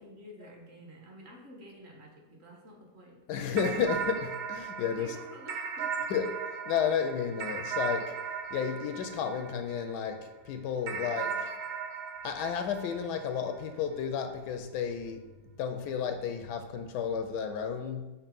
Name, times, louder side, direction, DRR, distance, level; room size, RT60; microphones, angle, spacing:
voice 1, 0.0-3.2 4.9-6.1 11.0-11.4, equal, 40° right, -1 dB, 1.4 m, -50 dB
voice 2, 3.3-5.2 6.1-6.3 6.7-8.1 8.5-11.4 12.2-15.2 15.6-18.1, left 7 dB, 80° left, 7 dB, 1.1 m, -32 dB
sound 1, 3.6-10.2 10.9-13.6, right 6 dB, 70° right, 1.1 m, -37 dB
6.5 x 2.8 x 5.2 m, 1.1 s
omnidirectional pair, 1.8 m